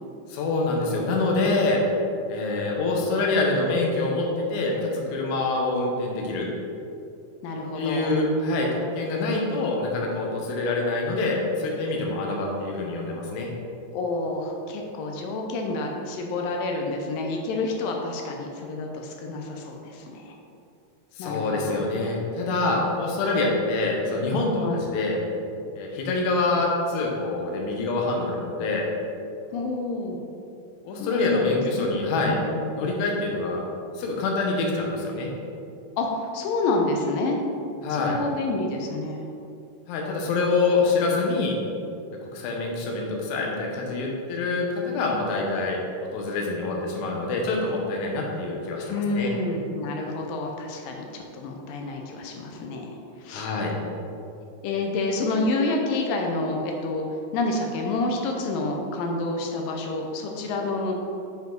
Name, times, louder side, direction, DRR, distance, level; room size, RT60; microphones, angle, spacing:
voice 1, 0.3-1.8 2.3-6.5 7.8-13.5 21.2-25.2 25.8-28.9 30.8-32.4 32.7-33.6 33.9-35.3 37.8-38.2 39.9-41.6 42.3-45.8 46.1-49.3 53.3-53.7, left 3 dB, 70° left, -1 dB, 2.2 m, -25 dB
voice 2, 7.4-8.2 13.9-20.3 21.2-21.8 24.6-24.8 29.5-30.2 31.0-31.9 32.3-32.6 36.0-37.4 38.0-39.2 48.8-53.5 54.6-57.1 57.3-61.0, left 2 dB, 85° left, 1 dB, 2.4 m, -28 dB
7.0 x 5.3 x 3.9 m, 2.6 s
omnidirectional pair, 3.9 m